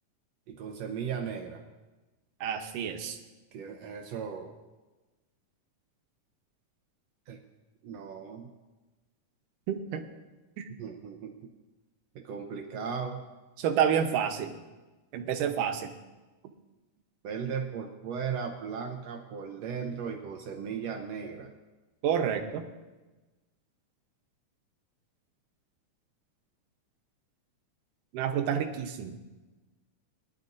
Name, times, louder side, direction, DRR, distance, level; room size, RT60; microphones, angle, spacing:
voice 1, 0.5-1.6 3.5-4.5 7.3-7.4 7.8-8.5 10.8-11.4 12.1-13.2 17.2-21.5, right 6 dB, 70° right, 3 dB, 1.7 m, -36 dB
voice 2, 2.4-3.2 9.7-10.0 10.6-10.7 13.6-14.5 15.1-15.9 22.0-22.6 28.1-29.1, right 8 dB, 85° right, 6 dB, 2.5 m, -29 dB
19.5 x 11.5 x 2.6 m, 1.2 s
omnidirectional pair, 3.7 m